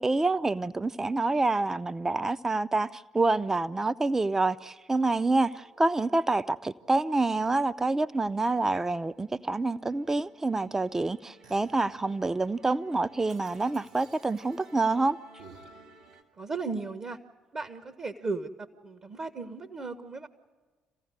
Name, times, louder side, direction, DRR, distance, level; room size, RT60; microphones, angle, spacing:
voice 1, 0.0-15.2, right 3 dB, 20° right, 0.7 m, -27 dB
Musical instrument, 5.0-16.2, right 2 dB, 80° right, 2.0 m, -56 dB
voice 2, 16.4-17.2 17.5-20.3, right 3 dB, 40° right, 1.2 m, -36 dB
26.5 x 15.5 x 9.7 m
figure-of-eight pair, 45°, 2 cm